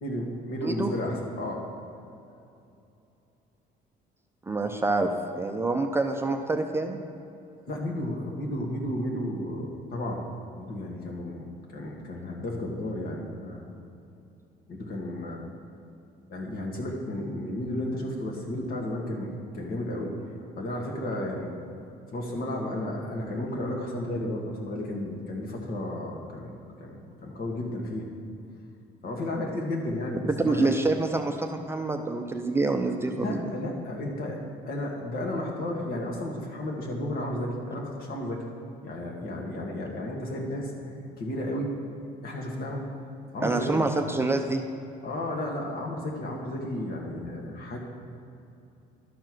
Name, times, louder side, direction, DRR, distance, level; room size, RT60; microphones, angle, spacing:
voice 1, 0.0-1.6 7.7-10.2 10.5-11.4 11.7-13.7 14.7-15.4 16.3-20.2 20.5-21.5 22.1-26.5 26.8-28.1 29.0-30.8 33.1-34.4 34.7-38.4 38.8-41.8 42.2-42.9 43.3-43.9 45.0-47.8, left 1 dB, 60° left, -1 dB, 1.8 m, -33 dB
voice 2, 0.6-0.9 4.5-7.0 30.4-33.4 43.4-44.7, right 2 dB, 15° right, 4 dB, 0.5 m, -27 dB
12.0 x 4.5 x 6.0 m, 2.7 s
cardioid pair, 110°, 17 cm